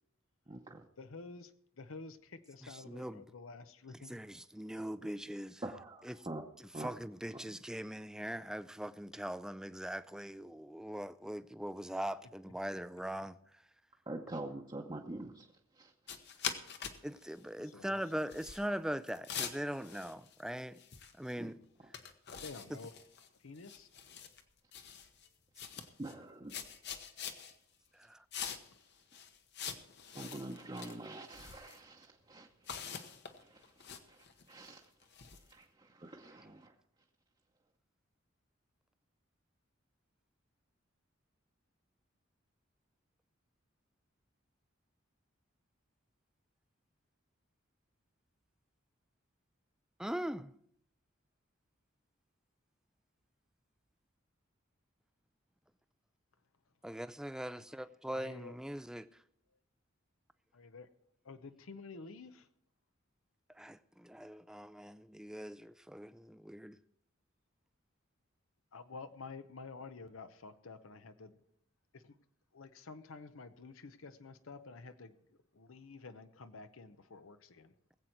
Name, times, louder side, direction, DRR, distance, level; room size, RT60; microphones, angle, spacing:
voice 1, 0.5-0.9 5.6-6.5 6.7-6.9 7.3-7.4 14.1-16.4 21.4-21.5 26.0-26.8 30.1-34.9 35.3-36.7, right 2 dB, 25° right, 0.8 m, -46 dB
voice 2, 1.0-4.2 17.6-18.2 22.4-22.9 23.4-23.9 57.6-57.7 58.1-58.6 60.5-60.9 61.2-62.5 68.7-71.4 71.9-72.2 72.5-75.1 75.5-77.7, left 4 dB, 85° left, 0.8 m, -50 dB
voice 3, 2.6-3.3 4.1-5.6 6.8-13.4 17.0-20.8 21.2-21.6 28.0-28.2 50.0-50.5 56.8-59.1 63.6-66.8, equal, 5° right, 0.4 m, -41 dB
sound 1, 16.1-17.0 17.3-17.4 18.2-18.6 19.1-20.5 20.8-21.3 21.6-21.7 21.9-23.3 23.6-24.4 24.7-25.3 25.6-26.1 26.5-27.5 28.3-28.8 29.1-30.9 31.3-31.8 32.6-35.5, left 7 dB, 55° left, 1.1 m, -44 dB
20.0 x 8.0 x 4.5 m
head